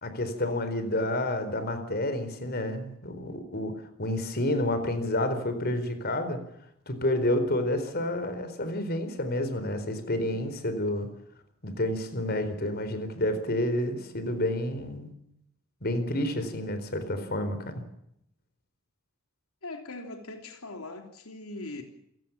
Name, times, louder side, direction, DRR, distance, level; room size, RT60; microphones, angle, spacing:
voice 1, 0.0-6.4 6.9-11.1 11.6-15.1 15.8-17.8, left 1 dB, 45° left, 4.3 m, -29 dB
voice 2, 19.6-21.8, left 2 dB, 85° left, 3.4 m, -40 dB
28.5 x 17.0 x 7.3 m
head